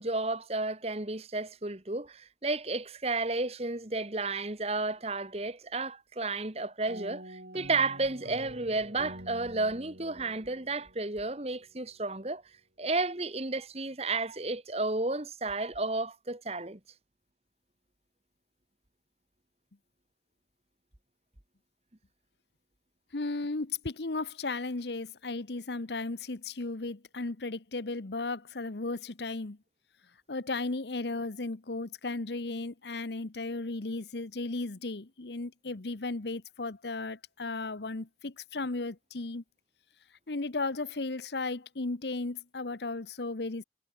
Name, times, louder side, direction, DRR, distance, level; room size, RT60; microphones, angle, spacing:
voice 1, 0.0-12.4 12.8-16.8, right 3 dB, 35° right, 1.7 m, -32 dB
sound 1, 6.9-11.5, right 1 dB, 65° right, 5.7 m, -47 dB
voice 2, 23.1-29.6 30.3-39.4 40.3-43.6, left 3 dB, 75° left, 1.0 m, -35 dB
head